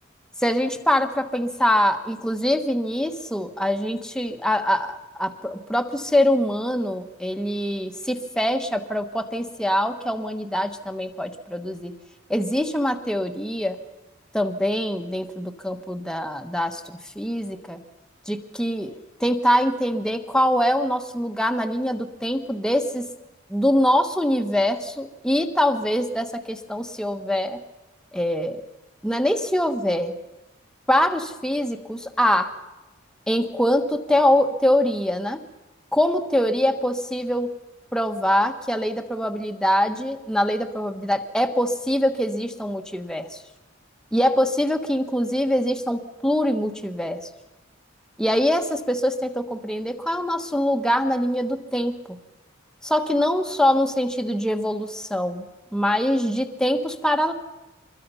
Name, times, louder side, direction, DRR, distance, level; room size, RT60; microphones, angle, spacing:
voice 1, 0.4-11.9 12.3-13.8 14.3-17.8 18.3-18.9 19.2-23.0 23.5-27.6 28.1-28.6 29.0-30.1 30.9-32.6 33.3-35.4 35.9-37.5 37.9-43.4 44.1-47.2 48.2-52.2 52.8-55.5 55.7-57.3, equal, 5° left, 6 dB, 1.3 m, -23 dB
25.0 x 21.5 x 5.6 m, 1.0 s
head